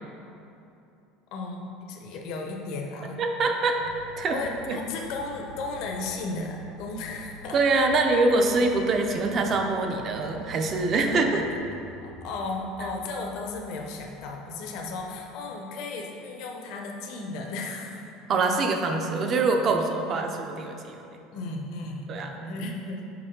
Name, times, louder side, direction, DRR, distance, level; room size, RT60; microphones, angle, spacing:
voice 1, 1.3-3.2 3.8-3.9 4.3-7.6 12.0-18.1 21.3-23.1, left 3 dB, 60° left, 1 dB, 0.7 m, -35 dB
voice 2, 3.2-3.8 4.2-4.4 4.7-4.8 7.5-11.5 18.3-21.0 22.1-22.3, right 3 dB, 35° right, 4 dB, 0.5 m, -24 dB
sound 1, 3.8-15.3, equal, 70° right, 0.7 m, -47 dB
5.4 x 4.8 x 3.7 m, 2.7 s
cardioid pair, 150°, 0 cm